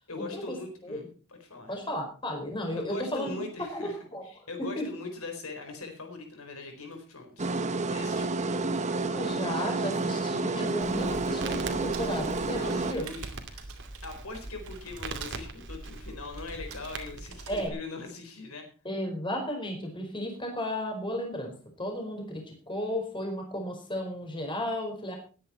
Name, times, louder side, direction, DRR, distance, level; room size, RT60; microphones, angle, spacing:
voice 1, 0.1-1.8 2.7-4.0 4.2-7.5 7.9-8.3 12.5-13.2 13.5-13.7 14.0-18.6, left 3 dB, 75° left, 5 dB, 4.1 m, -41 dB
voice 2, 1.7-3.4 3.7-4.4 4.8-4.9 8.6-13.0 17.5-17.7 18.8-25.2, left 1 dB, 20° left, 2 dB, 4.8 m, -34 dB
sound 1, 7.4-12.9, right 3 dB, 35° right, 1.1 m, -30 dB
Crackle, 10.8-17.7, right 3 dB, 60° right, 2.4 m, -41 dB
sound 2, 11.9-15.4 16.4-16.9 17.3-17.6, right 8 dB, 80° right, 3.4 m, -48 dB
20.0 x 9.8 x 4.3 m, 0.38 s
head